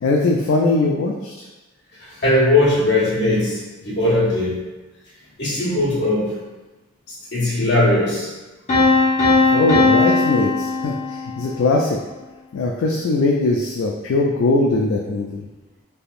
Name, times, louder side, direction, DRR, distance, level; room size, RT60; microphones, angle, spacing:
voice 1, 0.0-1.3 9.2-12.0 12.5-15.5, left 2 dB, 70° left, -1 dB, 0.3 m, -20 dB
voice 2, 2.0-4.6 5.4-6.3 7.3-8.3, left 1 dB, 50° left, -8 dB, 1.2 m, -19 dB
Piano, 8.7-11.6, left 3 dB, 30° left, 0.9 m, -18 dB
3.4 x 2.7 x 2.4 m, 1.1 s
head